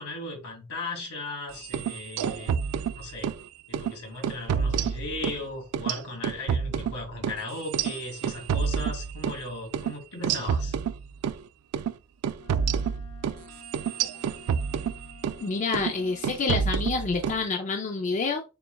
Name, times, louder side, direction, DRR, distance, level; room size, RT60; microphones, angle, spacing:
voice 1, 0.0-2.6 2.9-3.3 3.7-10.8, left 2 dB, 75° left, 1.8 m, -37 dB
sound 1, 1.6-3.4 3.7-3.9 4.2-5.4 5.7-9.4 9.7-9.9 10.2-11.4 11.7-11.9 12.2-15.4 15.7-16.0 16.2-17.4, right 7 dB, 85° right, 0.3 m, -28 dB
Wind instrument woodwind instrument, 12.3-16.7, left 5 dB, 60° left, 1.2 m, -52 dB
voice 2, 15.4-18.4, left 4 dB, 35° left, 0.4 m, -28 dB
6.8 x 2.3 x 2.2 m
head